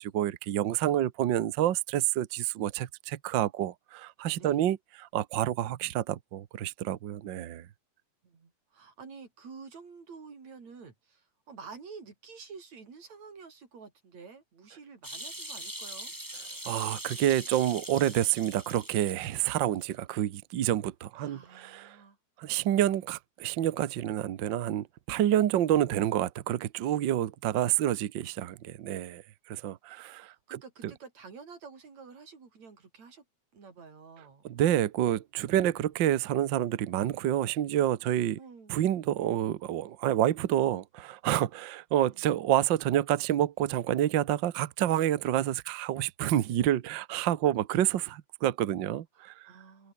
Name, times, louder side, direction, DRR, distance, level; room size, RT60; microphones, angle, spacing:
voice 1, 0.0-4.8 5.1-7.6 16.6-22.0 22.4-29.2 29.5-30.6 34.4-38.4 38.7-49.5, right 12 dB, 75° right, 1.0 m, -28 dB
voice 2, 4.3-4.6 8.2-16.1 21.1-22.2 30.5-33.2 33.5-34.9 38.4-38.8 42.1-42.2 49.2-49.9, right 5 dB, 60° right, 5.5 m, -49 dB
sound 1, 15.0-19.6 19.9-20.0, right 1 dB, 5° right, 2.6 m, -42 dB
omnidirectional pair, 3.6 m